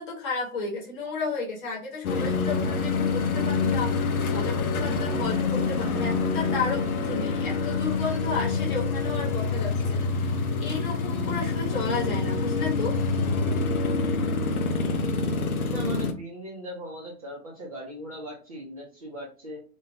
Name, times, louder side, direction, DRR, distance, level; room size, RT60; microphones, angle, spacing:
voice 1, 0.0-13.0, left 4 dB, 35° left, -3 dB, 1.0 m, -33 dB
sound 1, 2.0-16.1, left 4 dB, 70° left, 0.6 m, -26 dB
voice 2, 15.7-19.6, right 1 dB, 25° right, -4 dB, 0.4 m, -38 dB
2.2 x 2.1 x 2.7 m, 0.40 s
figure-of-eight pair, 110°, 45 cm